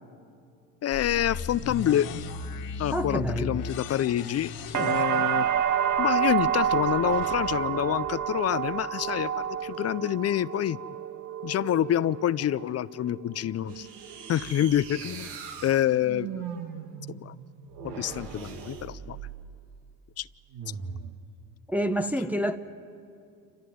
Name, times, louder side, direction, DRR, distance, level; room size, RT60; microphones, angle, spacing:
voice 1, 0.8-2.1 2.8-5.5 6.0-10.8 11.4-13.9 14.3-15.3 15.6-16.3 17.1-17.3 17.8-19.2 20.2-20.3, left 11 dB, 35° left, 0.5 m, -27 dB
sound 1, 0.9-8.8, left 4 dB, 60° left, 1.9 m, -38 dB
voice 2, 2.9-3.6 4.7-5.0 21.7-22.6, equal, 5° right, 0.7 m, -28 dB
sound 2, 4.7-12.7 13.0-13.7, right 9 dB, 45° right, 0.8 m, -28 dB
sound 3, 13.7-19.6 20.5-21.1, right 7 dB, 75° right, 1.9 m, -40 dB
28.0 x 14.5 x 9.3 m
supercardioid pair, 85°, 42 cm